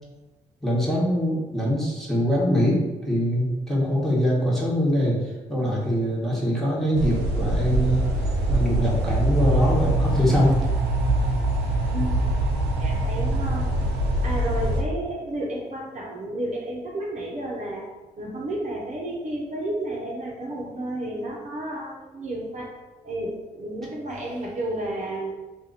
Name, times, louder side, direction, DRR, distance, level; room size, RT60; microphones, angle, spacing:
voice 1, 0.6-5.2 5.5-8.0 8.5-10.6, equal, ahead, -5 dB, 1.4 m, -23 dB
sound 1, 6.9-14.8, right 1 dB, 85° right, 0.5 m, -24 dB
voice 2, 12.8-13.7 14.2-17.8 18.2-22.8 23.0-25.3, right 1 dB, 45° right, -3 dB, 0.9 m, -31 dB
2.7 x 2.5 x 4.1 m, 1.1 s
supercardioid pair, 50°, 17 cm